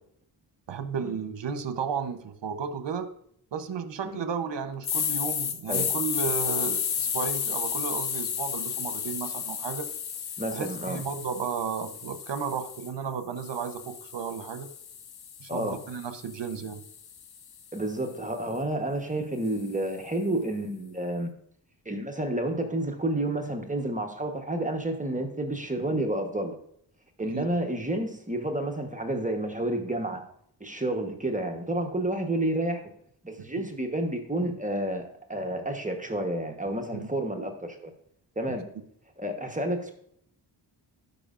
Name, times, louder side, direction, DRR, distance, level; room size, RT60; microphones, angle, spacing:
voice 1, 0.7-3.1 3.5-9.9 10.5-14.7 15.4-16.8 27.3-27.5 36.9-37.1, right 6 dB, 65° right, 10 dB, 0.9 m, -33 dB
sound 1, 4.8-12.9 13.4-17.6, left 8 dB, 55° left, 0.8 m, -33 dB
voice 2, 10.4-11.0 15.5-15.8 17.7-21.3 21.8-26.6 27.2-30.2 30.6-32.8 33.2-37.9 38.4-38.6 39.2-39.9, right 1 dB, 15° right, 3 dB, 1.1 m, -30 dB
12.0 x 5.3 x 2.5 m, 0.67 s
cardioid pair, 60°, 46 cm